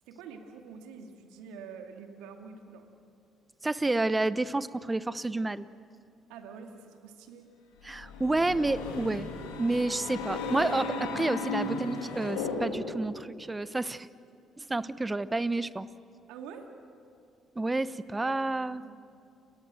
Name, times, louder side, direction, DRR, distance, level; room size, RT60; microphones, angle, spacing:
voice 1, 0.1-2.9 6.3-7.5 16.3-16.7 18.2-18.4 18.7-18.9, right 6 dB, 75° right, 4 dB, 2.5 m, -46 dB
voice 2, 3.6-5.7 7.8-9.3 9.6-14.1 14.6-15.9 17.6-18.8, right 2 dB, 20° right, 16 dB, 0.9 m, -30 dB
sound 1, 7.8-13.1, left 3 dB, 80° left, 2.9 m, -35 dB
30.0 x 21.5 x 7.8 m, 2.5 s
hypercardioid pair, 50°, 0 cm